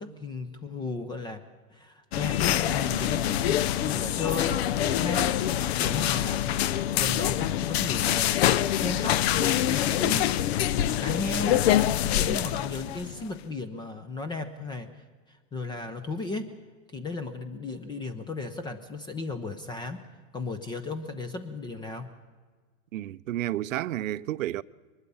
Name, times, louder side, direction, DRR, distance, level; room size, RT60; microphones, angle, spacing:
voice 1, 0.0-1.4 1.7-6.5 6.9-10.3 10.7-11.7 12.0-16.5 16.9-20.1 20.3-22.1, left 3 dB, 10° left, 0.6 m, -35 dB
sound 1, 2.1-13.2, left 12 dB, 50° left, 0.7 m, -25 dB
voice 2, 22.9-24.6, right 13 dB, 75° right, 0.7 m, -31 dB
23.0 x 20.5 x 5.5 m
hypercardioid pair, 140°, 39 cm